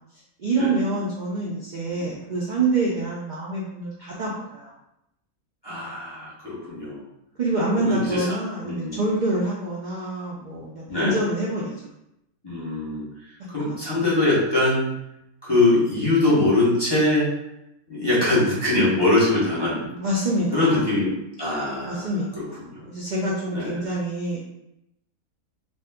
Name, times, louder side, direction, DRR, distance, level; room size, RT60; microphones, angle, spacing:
voice 1, 0.4-4.7 7.4-11.7 13.6-13.8 19.4-19.5 19.8-20.8 21.8-24.4, right 2 dB, 90° right, -5 dB, 0.4 m, -26 dB
voice 2, 5.6-7.0 7.8-8.4 8.6-9.0 10.9-11.2 12.4-14.9 15.4-17.3 17.9-19.9 20.5-21.1 21.4-22.9 23.5-23.9, left 2 dB, 20° left, -8 dB, 0.8 m, -23 dB
2.6 x 2.1 x 3.5 m, 0.83 s
omnidirectional pair, 1.5 m